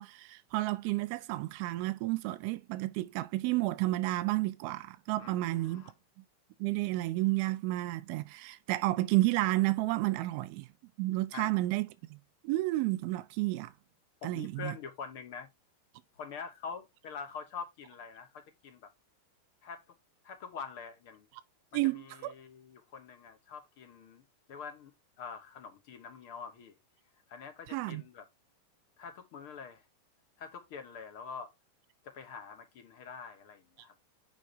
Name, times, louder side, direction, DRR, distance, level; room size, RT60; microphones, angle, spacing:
voice 1, 0.0-5.8 6.6-10.7 11.0-12.2 12.4-13.7 14.2-14.8 21.7-22.3 27.7-28.0, right 18 dB, 45° right, 0.6 m, -31 dB
voice 2, 5.2-5.9 11.3-11.6 14.2-15.5 16.2-18.9 19.6-19.9 20.2-21.3 21.8-24.2 24.5-24.9 25.2-26.8 27.3-28.2 29.0-29.8 30.4-31.5 32.0-33.9, left 6 dB, 50° left, 2.5 m, -45 dB
7.6 x 5.3 x 3.5 m
supercardioid pair, 155°, 0 cm